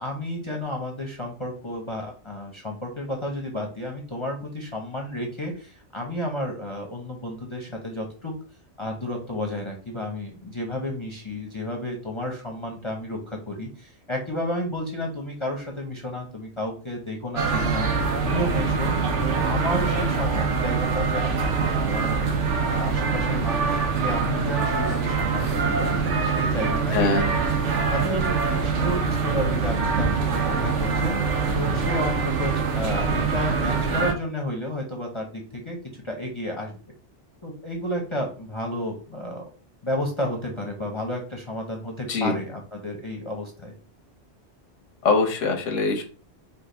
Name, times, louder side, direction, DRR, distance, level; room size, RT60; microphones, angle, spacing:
voice 1, 0.0-8.3 8.8-17.9 18.2-22.2 22.6-27.5 27.9-31.2 31.5-35.8 36.0-36.8 37.4-39.5 39.8-43.7, left 1 dB, 30° left, 1 dB, 0.8 m, -32 dB
sound 1, 17.4-34.1, right 5 dB, 80° right, 1.2 m, -24 dB
voice 2, 26.9-27.2 42.1-42.3 45.0-46.0, left 3 dB, 90° left, 6 dB, 1.2 m, -22 dB
5.1 x 2.4 x 3.9 m, 0.39 s
omnidirectional pair, 1.2 m